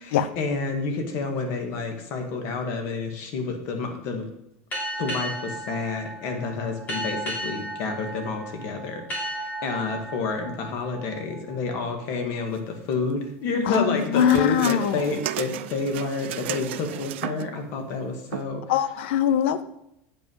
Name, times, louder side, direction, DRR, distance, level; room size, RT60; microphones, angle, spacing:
voice 1, 0.0-4.3 5.0-18.6, left 4 dB, 50° left, 4 dB, 1.9 m, -29 dB
sound 1, 4.7-12.0, right 1 dB, 25° left, 3.1 m, -35 dB
voice 2, 13.7-15.0 18.7-19.6, left 9 dB, 75° left, 13 dB, 0.7 m, -22 dB
sound 2, 13.7-17.6 18.3-18.4, right 14 dB, 80° right, 0.4 m, -34 dB
8.4 x 5.7 x 5.5 m, 0.81 s
supercardioid pair, 150°, 6 cm